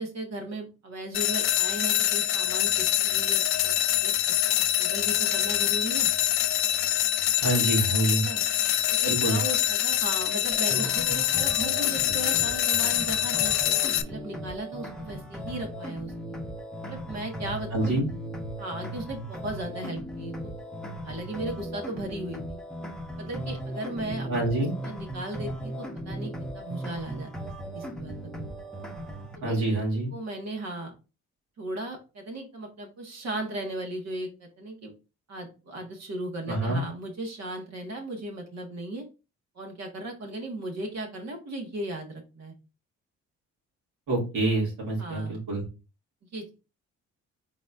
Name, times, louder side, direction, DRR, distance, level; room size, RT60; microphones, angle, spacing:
voice 1, 0.0-3.8 4.0-4.1 4.6-6.1 8.2-8.4 8.9-13.8 14.0-16.4 16.8-18.0 18.6-20.5 21.0-22.6 23.2-24.3 24.6-28.6 29.4-29.6 30.1-30.9 31.6-34.9 35.3-39.0 39.5-42.5 45.0-45.4 46.3-46.5, right 1 dB, 60° right, 2 dB, 1.5 m, -36 dB
sound 1, 1.1-14.0, left 12 dB, 65° left, 0.5 m, -25 dB
voice 2, 7.4-8.2 9.0-9.4 17.7-18.1 24.3-24.7 29.4-30.1 36.5-36.8 44.1-45.6, right 2 dB, 90° right, -4 dB, 2.4 m, -26 dB
sound 2, 10.5-29.4, right 1 dB, ahead, 0.8 m, -37 dB
4.1 x 4.0 x 2.5 m, 0.30 s
cardioid pair, 90°, 30 cm